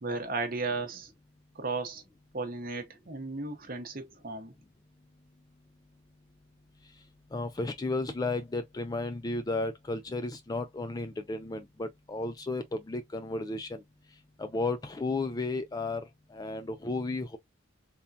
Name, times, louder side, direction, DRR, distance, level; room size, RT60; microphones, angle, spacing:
voice 1, 0.0-1.1 1.5-2.0 2.3-4.5, right 3 dB, 45° right, 0.8 m, -35 dB
voice 2, 7.3-13.8 14.4-17.4, left 2 dB, 20° left, 0.3 m, -33 dB
3.6 x 2.2 x 2.6 m
head